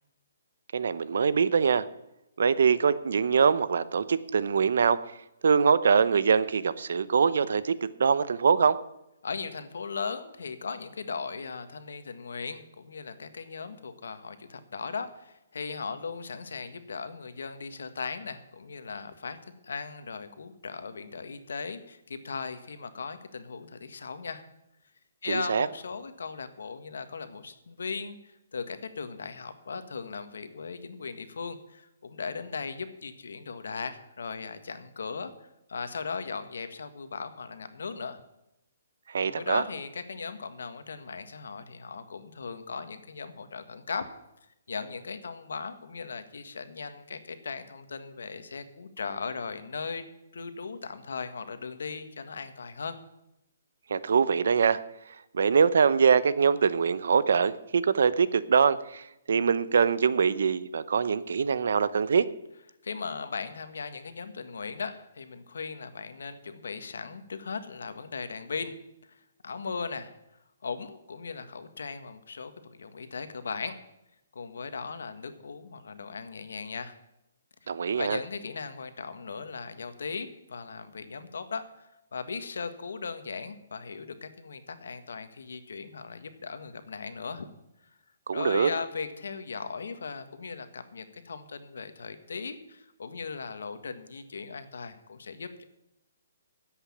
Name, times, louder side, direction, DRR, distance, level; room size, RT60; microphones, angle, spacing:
voice 1, 0.7-1.8 2.4-5.0 5.4-8.8 25.3-25.7 39.1-39.6 53.9-54.8 55.3-62.3 77.7-78.2 88.3-88.7, right 6 dB, 65° right, 16 dB, 0.8 m, -23 dB
voice 2, 9.2-24.4 25.2-35.3 35.7-38.2 39.3-44.0 44.7-50.0 50.3-53.0 62.8-68.7 69.1-70.1 70.6-73.8 74.3-76.9 78.0-87.4 88.3-95.6, left 5 dB, 80° left, 10 dB, 1.6 m, -38 dB
10.0 x 8.2 x 9.8 m, 0.88 s
hypercardioid pair, 170°, 0 cm